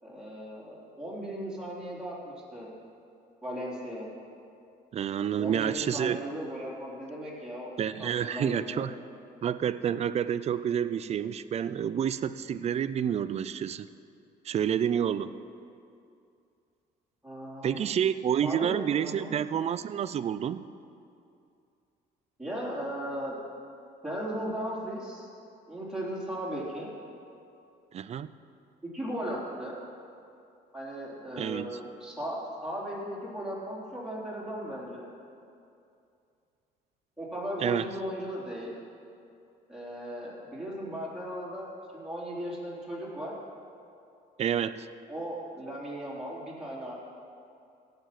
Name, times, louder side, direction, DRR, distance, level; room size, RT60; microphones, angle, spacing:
voice 1, 0.0-2.7 3.4-4.1 5.4-7.7 8.0-8.9 15.0-15.3 17.2-17.9 18.4-18.8 19.0-19.4 22.4-23.4 24.0-25.3 25.7-26.9 28.9-29.8 30.7-35.1 37.2-38.8 39.7-43.3 45.1-46.9, equal, 5° right, -7 dB, 3.6 m, -37 dB
voice 2, 4.9-6.2 7.8-8.9 9.4-13.9 14.4-15.4 17.6-20.7 27.9-28.3 31.4-31.8 37.6-37.9 44.4-44.9, right 9 dB, 40° right, 15 dB, 0.4 m, -29 dB
16.5 x 6.8 x 6.0 m, 2.5 s
cardioid pair, 110°, 17 cm